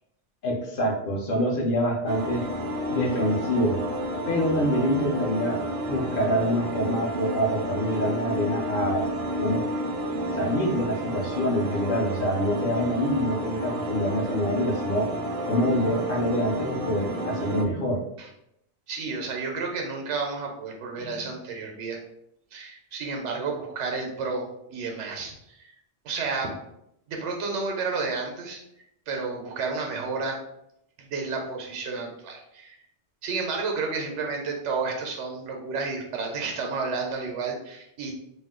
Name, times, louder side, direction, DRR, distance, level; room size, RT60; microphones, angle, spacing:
voice 1, 0.4-2.4 2.9-3.8 4.3-5.6 5.9-9.0 9.4-9.6 10.3-15.1 15.5-18.0 21.0-21.1, equal, 55° left, -1 dB, 0.7 m, -26 dB
sound 1, 2.1-17.6, equal, 60° right, 0.6 m, -31 dB
voice 2, 18.9-22.0 22.5-24.4 24.7-25.7 26.0-26.5 27.1-28.6 29.1-30.4 31.0-32.8 33.2-38.1, right 4 dB, 90° right, 1 dB, 0.9 m, -31 dB
2.5 x 2.1 x 3.5 m, 0.79 s
omnidirectional pair, 1.2 m